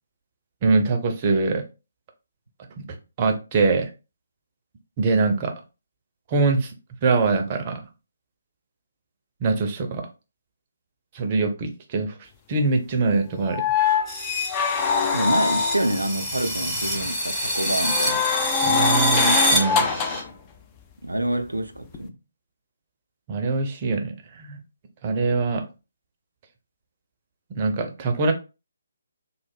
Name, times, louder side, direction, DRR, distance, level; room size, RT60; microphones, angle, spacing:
voice 1, 0.6-1.6 2.8-2.9 3.2-3.9 5.0-5.5 6.3-6.7 7.0-7.8 9.4-10.1 11.1-12.1 12.5-13.6 18.6-19.9 23.3-24.6 25.0-25.6 27.5-28.3, right 3 dB, 30° right, 0.6 m, -23 dB
sound 1, 13.5-16.0 17.8-20.3 21.9-22.0, left 6 dB, 20° left, 0.4 m, -24 dB
sound 2, 14.1-20.2, equal, 5° left, 0.8 m, -26 dB
voice 2, 15.1-18.3 21.0-22.1, right 1 dB, 80° right, 0.4 m, -27 dB
3.1 x 2.1 x 3.3 m
figure-of-eight pair, 140°, 0 cm